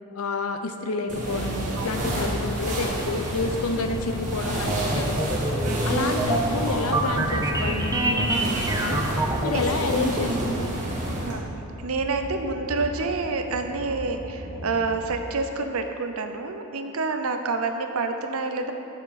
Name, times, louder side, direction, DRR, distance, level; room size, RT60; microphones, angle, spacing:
voice 1, 0.1-5.3 5.8-9.0 9.4-10.8, left 3 dB, 90° left, 6 dB, 0.6 m, -29 dB
sound 1, 1.1-11.4, right 1 dB, 35° right, 1.5 m, -30 dB
voice 2, 1.8-2.1 5.6-6.2 9.5-9.6 11.2-11.5 11.8-18.7, right 3 dB, 80° right, 6 dB, 0.7 m, -28 dB
sound 2, 4.5-10.5, right 1 dB, 15° right, 0.7 m, -26 dB
sound 3, 8.8-15.0, left 1 dB, 55° left, 1.1 m, -42 dB
8.8 x 7.0 x 4.1 m, 3.0 s
head